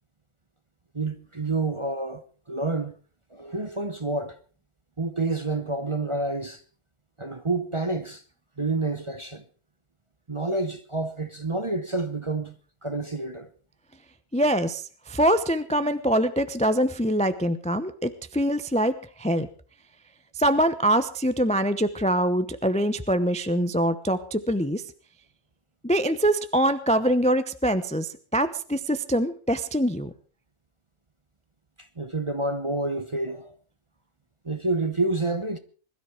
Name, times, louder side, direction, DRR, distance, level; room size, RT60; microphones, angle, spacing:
voice 1, 0.9-3.0 3.3-4.4 5.0-6.6 7.2-8.2 8.6-9.4 10.3-13.5 31.8-33.5 34.4-35.6, right 2 dB, 25° right, 0.8 m, -29 dB
voice 2, 14.3-19.5 20.3-24.8 25.8-30.1, right 1 dB, 5° left, 0.6 m, -24 dB
21.0 x 13.0 x 4.7 m
omnidirectional pair, 1.6 m